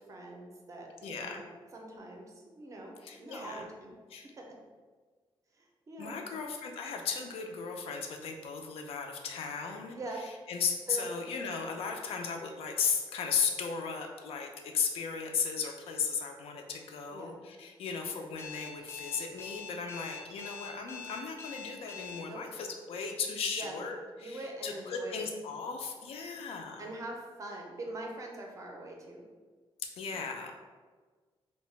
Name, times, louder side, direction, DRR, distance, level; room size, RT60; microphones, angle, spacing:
voice 1, 0.0-1.4 1.7-3.9 4.2-4.6 5.6-6.2 9.9-10.2 10.9-11.1 17.1-17.4 22.2-22.4 23.6-23.8 24.2-25.3 26.8-29.2 30.1-30.2, right 2 dB, 35° right, 0 dB, 0.4 m, -43 dB
voice 2, 1.0-1.4 3.0-3.7 4.1-4.3 6.0-10.0 10.2-26.9 30.0-30.6, left 5 dB, 85° left, 3 dB, 0.4 m, -36 dB
Alarm, 18.4-22.2, left 6 dB, 25° left, 0.4 m, -44 dB
2.7 x 2.1 x 3.1 m, 1.4 s
wide cardioid pair, 160°, 10 cm